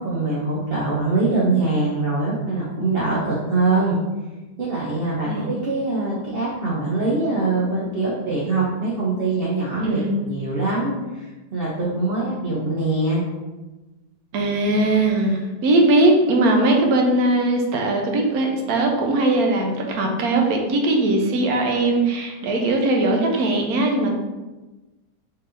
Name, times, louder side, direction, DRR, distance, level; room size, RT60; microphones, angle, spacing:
voice 1, 0.0-4.0 4.6-10.0 10.3-13.2, right 3 dB, 50° right, -6 dB, 0.7 m, -23 dB
voice 2, 9.8-10.2 14.3-24.1, right 2 dB, 70° right, 2 dB, 1.1 m, -20 dB
4.4 x 3.3 x 2.6 m, 1.1 s
omnidirectional pair, 1.7 m